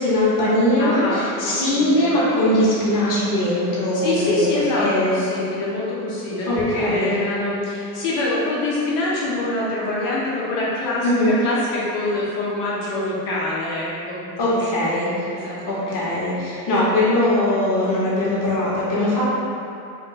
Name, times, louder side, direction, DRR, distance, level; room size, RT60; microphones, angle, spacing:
voice 1, 0.0-4.4 4.8-5.2 6.4-7.1 11.0-11.4 14.4-19.3, left 1 dB, 40° left, -7 dB, 1.4 m, -21 dB
voice 2, 0.8-2.1 3.9-14.9 15.3-15.9, left 2 dB, 75° left, -7 dB, 1.3 m, -25 dB
3.6 x 2.5 x 3.9 m, 2.7 s
hypercardioid pair, 80°, 48 cm